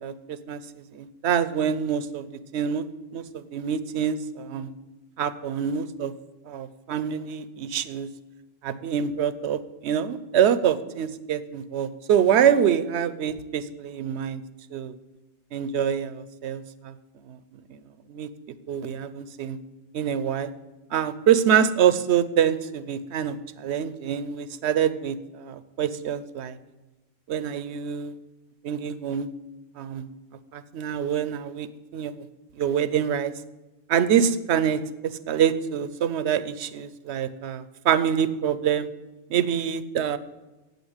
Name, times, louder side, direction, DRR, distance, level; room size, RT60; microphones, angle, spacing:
voice 1, 0.0-2.8 3.1-4.7 5.2-6.1 6.5-8.1 8.6-14.4 14.7-14.9 15.5-16.9 17.3-17.4 17.7-17.8 18.1-18.3 18.7-19.6 19.9-20.5 20.9-26.6 27.3-28.1 28.6-29.3 29.8-30.0 30.5-31.7 31.9-32.1 32.5-33.3 33.9-38.9 39.3-40.2, right 8 dB, 75° right, 15 dB, 0.9 m, -25 dB
8.2 x 8.0 x 8.8 m, 1.1 s
omnidirectional pair, 1.1 m